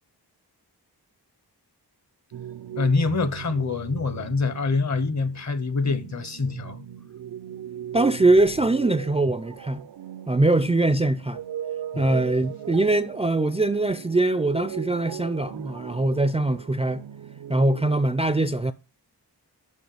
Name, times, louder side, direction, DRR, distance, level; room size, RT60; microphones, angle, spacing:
sound 1, 2.3-18.0, right 10 dB, 65° right, 0.6 m, -38 dB
voice 1, 2.8-6.8 11.9-12.0, left 4 dB, 40° left, 0.9 m, -25 dB
voice 2, 7.9-9.8 10.3-11.4 12.0-17.0 17.5-18.7, right 2 dB, 15° right, 0.4 m, -22 dB
6.4 x 5.3 x 6.8 m
cardioid pair, 50°, 41 cm